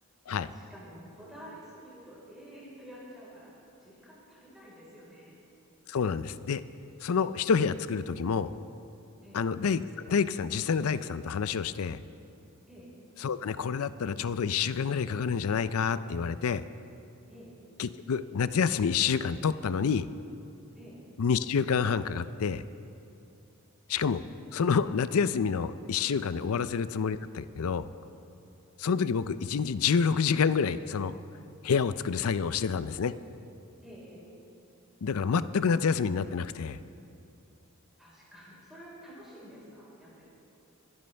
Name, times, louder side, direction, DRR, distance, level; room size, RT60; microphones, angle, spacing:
voice 1, 0.3-3.5 3.8-5.3 9.2-9.5 12.7-12.9 17.3-17.5 20.8-21.0 26.5-26.7 33.8-34.2 38.0-40.2, equal, ahead, -8 dB, 4.3 m, -49 dB
voice 2, 5.9-6.6 7.0-8.5 9.3-12.0 13.2-16.6 17.8-20.1 21.2-22.6 23.9-24.2 24.5-27.8 28.8-31.1 31.6-33.1 35.0-36.8, left 6 dB, 80° left, 14 dB, 0.5 m, -28 dB
26.5 x 11.0 x 3.4 m, 2.7 s
head